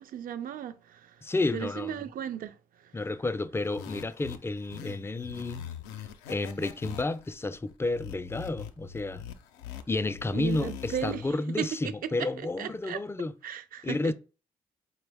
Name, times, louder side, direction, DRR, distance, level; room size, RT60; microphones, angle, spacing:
voice 1, 0.0-1.2 1.5-2.9 10.3-11.7 12.2-12.3 12.6-13.0 13.4-14.1, right 9 dB, 55° right, 0.4 m, -36 dB
voice 2, 1.2-2.1 2.9-5.6 6.3-9.2 9.9-13.3 13.8-14.1, left 2 dB, 15° left, 0.3 m, -31 dB
sound 1, 3.6-11.3, left 9 dB, 80° left, 0.4 m, -43 dB
4.3 x 2.1 x 3.4 m
hypercardioid pair, 40°, 17 cm